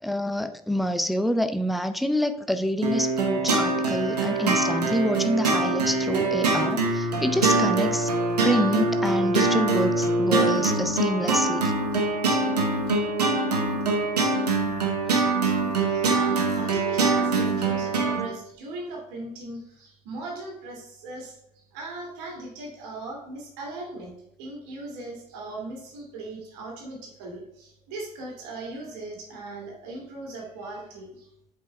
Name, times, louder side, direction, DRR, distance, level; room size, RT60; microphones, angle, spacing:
voice 1, 0.0-8.1 8.4-11.7 15.0-15.1, equal, ahead, 0.5 m, -27 dB
sound 1, 2.8-18.3, right 3 dB, 80° right, 1.1 m, -24 dB
voice 2, 15.8-21.4 21.7-24.1 24.4-31.3, right 2 dB, 60° right, 2.2 m, -38 dB
7.8 x 4.8 x 3.3 m
figure-of-eight pair, 60°, 20 cm